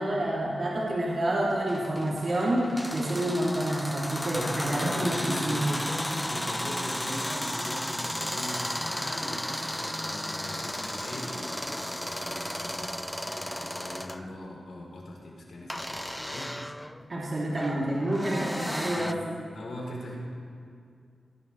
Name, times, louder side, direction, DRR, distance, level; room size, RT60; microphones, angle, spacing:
voice 1, 0.0-5.6 17.1-19.1, right 1 dB, 50° right, -7 dB, 3.3 m, -28 dB
sound 1, 1.7-14.2 15.7-19.1, equal, 5° left, 0.4 m, -34 dB
voice 2, 4.3-16.6 18.8-20.2, left 1 dB, 75° left, -3 dB, 4.5 m, -40 dB
19.5 x 17.0 x 3.4 m, 2.3 s
cardioid pair, 75°, 0 cm